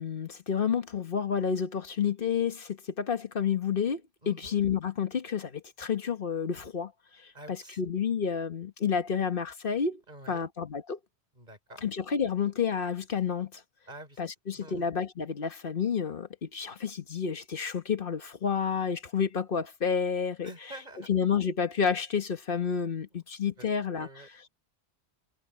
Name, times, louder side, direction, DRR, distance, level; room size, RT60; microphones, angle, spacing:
voice 1, 0.0-4.0 4.3-6.9 7.5-10.0 10.3-11.0 11.8-13.6 14.2-20.5 21.1-24.3, left 7 dB, 50° left, 1.4 m, -30 dB
voice 2, 4.2-4.5 7.3-7.8 10.1-10.5 11.3-11.8 13.9-14.2 14.5-14.9 20.4-21.1 23.6-23.7 24.0-24.5, right 1 dB, 40° right, 4.9 m, -47 dB
omnidirectional pair, 1.2 m